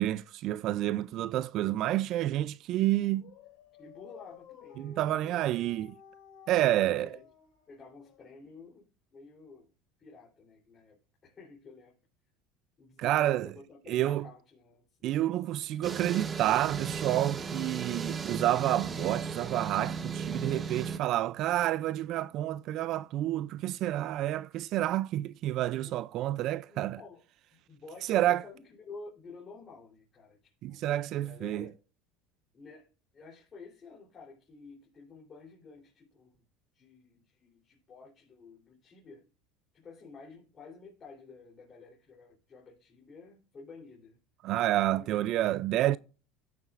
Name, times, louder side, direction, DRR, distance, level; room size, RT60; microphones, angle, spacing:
voice 1, 0.0-3.3 4.8-6.0 6.5-7.1 13.0-13.5 13.9-14.3 15.0-27.0 28.1-28.4 30.6-31.7 44.4-46.0, right 14 dB, 55° right, 0.3 m, -29 dB
Dog, 2.9-8.5, left 6 dB, 60° left, 5.3 m, -54 dB
voice 2, 3.8-5.4 6.7-7.2 7.7-9.7 10.0-12.0 12.8-15.9 25.8-26.0 26.6-27.2 27.5-31.8 32.5-32.9 33.1-36.4 36.7-39.3 39.7-44.2 44.9-45.3 45.8-46.0, left 4 dB, 30° left, 3.3 m, -51 dB
sound 1, 15.8-21.0, right 5 dB, 25° right, 0.9 m, -36 dB
15.0 x 7.1 x 2.5 m
supercardioid pair, 115°, 0 cm